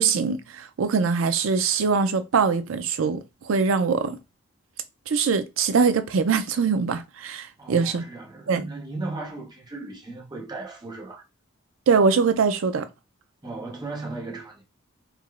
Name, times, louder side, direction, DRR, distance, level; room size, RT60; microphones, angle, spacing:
voice 1, 0.0-4.2 5.1-8.0 8.5-8.7 11.9-12.9, right 5 dB, 75° right, 0.4 m, -22 dB
voice 2, 7.6-11.2 13.4-14.6, right 2 dB, 20° right, 0.8 m, -36 dB
4.5 x 2.0 x 2.4 m
head